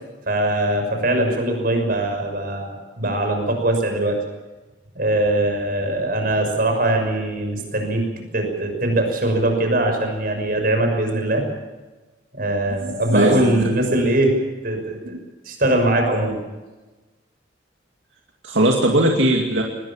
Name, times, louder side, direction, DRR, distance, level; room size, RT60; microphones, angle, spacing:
voice 1, 0.3-4.2 4.9-8.0 8.3-11.4 12.3-14.3 14.6-15.2 15.5-16.3, right 1 dB, 50° right, 4 dB, 6.2 m, -21 dB
voice 2, 12.8-13.4 13.9-14.0 18.4-19.6, right 1 dB, 80° right, 0 dB, 2.4 m, -19 dB
20.5 x 20.5 x 7.4 m, 1.2 s
head